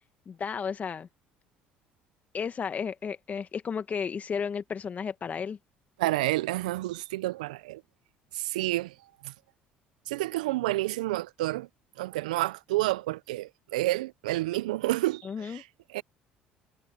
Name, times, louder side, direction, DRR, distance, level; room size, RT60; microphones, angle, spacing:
voice 1, 0.3-1.1 2.3-5.6 15.2-15.6, left 6 dB, 40° left, 1.1 m, -33 dB
voice 2, 6.0-7.8 8.3-8.9 9.2-9.3 10.1-11.7 12.0-16.0, right 18 dB, 85° right, 0.5 m, -29 dB
hypercardioid pair, 65°, 4 cm